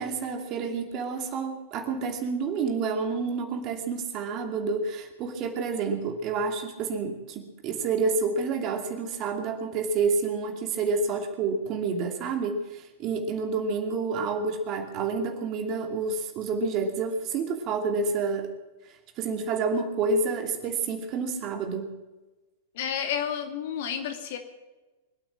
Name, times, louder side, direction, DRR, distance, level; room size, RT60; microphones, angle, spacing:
voice 1, 0.0-18.5 19.2-21.9, right 4 dB, 40° right, 4 dB, 2.7 m, -29 dB
voice 2, 22.7-24.4, left 8 dB, 55° left, 6 dB, 2.4 m, -30 dB
24.0 x 8.8 x 6.1 m, 1.2 s
figure-of-eight pair, 100°, 0 cm